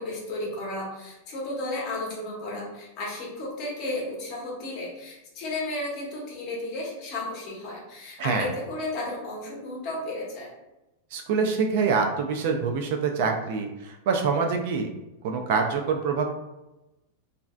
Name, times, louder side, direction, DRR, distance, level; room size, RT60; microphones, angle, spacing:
voice 1, 0.0-10.5, left 2 dB, 35° left, -3 dB, 0.9 m, -33 dB
voice 2, 8.2-8.5 11.1-14.9 15.2-16.3, right 5 dB, 50° right, 4 dB, 0.3 m, -25 dB
3.2 x 2.5 x 2.3 m, 0.99 s
supercardioid pair, 170°, 0 cm